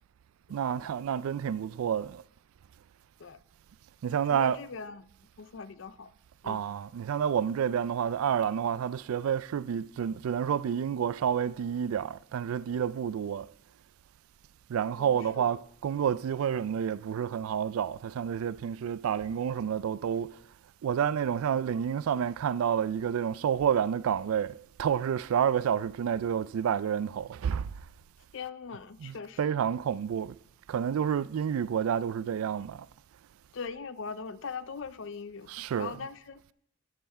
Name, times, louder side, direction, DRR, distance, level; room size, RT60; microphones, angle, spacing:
voice 1, 0.5-2.2 4.0-4.6 6.4-13.5 14.7-20.4 20.8-27.7 29.0-30.4 30.7-32.9 35.5-36.0, right 8 dB, 85° right, 0.3 m, -29 dB
voice 2, 4.3-5.1 5.4-6.1 6.4-6.6 15.0-15.5 28.3-29.6 33.5-36.4, left 5 dB, 65° left, 0.5 m, -41 dB
13.5 x 5.7 x 4.3 m
head